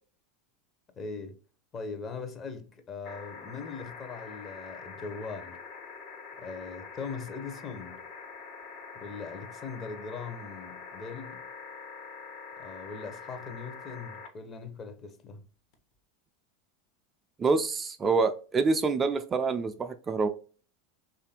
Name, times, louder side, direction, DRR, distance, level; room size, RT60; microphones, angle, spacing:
voice 1, 1.0-1.4 1.7-5.6 6.4-8.1 9.0-11.5 12.6-15.5, left 4 dB, 30° left, 0.8 m, -40 dB
sound 1, 3.0-14.3 15.7-15.8, left 5 dB, 55° left, 1.0 m, -45 dB
voice 2, 17.4-20.3, right 4 dB, 25° right, 0.4 m, -26 dB
3.3 x 2.5 x 4.2 m
hypercardioid pair, 90°, 0 cm